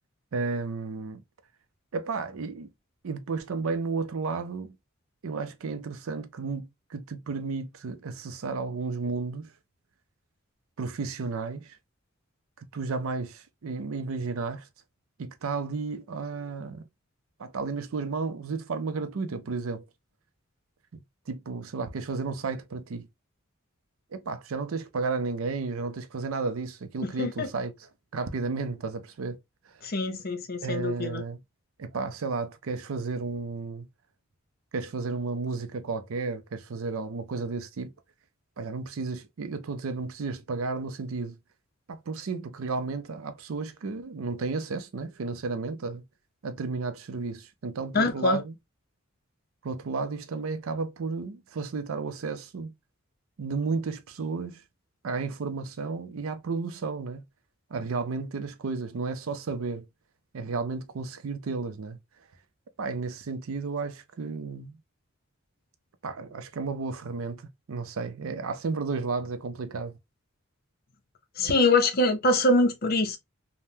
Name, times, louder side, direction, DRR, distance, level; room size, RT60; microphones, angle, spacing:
voice 1, 0.3-1.2 1.9-2.7 3.0-4.7 5.2-9.5 10.8-11.8 12.6-14.7 15.2-16.8 17.4-19.8 21.3-23.1 24.1-29.4 29.7-29.8 30.6-31.4 31.8-33.9 34.7-37.9 38.6-41.4 41.9-46.0 46.4-48.5 49.6-52.7 53.4-54.6 55.0-57.2 57.7-59.9 60.3-62.0 62.8-64.8 66.0-69.9, right 4 dB, 80° right, 0.5 m, -33 dB
voice 2, 27.0-27.5 29.8-31.2 47.9-48.4 71.4-73.2, left 2 dB, 45° left, 0.6 m, -24 dB
3.3 x 2.1 x 2.6 m
head